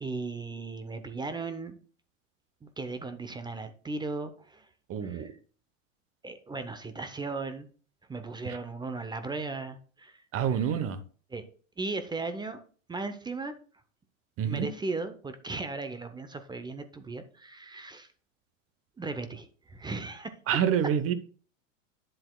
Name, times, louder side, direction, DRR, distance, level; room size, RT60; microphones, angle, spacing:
voice 1, 0.0-1.8 2.6-4.7 5.0-5.3 6.2-7.7 8.1-10.2 10.5-10.7 11.3-11.5 11.8-12.6 12.9-13.5 14.4-18.1 19.0-20.3, right 3 dB, 10° right, 0.6 m, -37 dB
voice 2, 4.9-5.3 8.4-8.6 10.3-11.0 14.4-14.7 20.5-21.1, right 8 dB, 35° right, 0.9 m, -27 dB
9.9 x 7.7 x 2.3 m
hypercardioid pair, 100°, 40 cm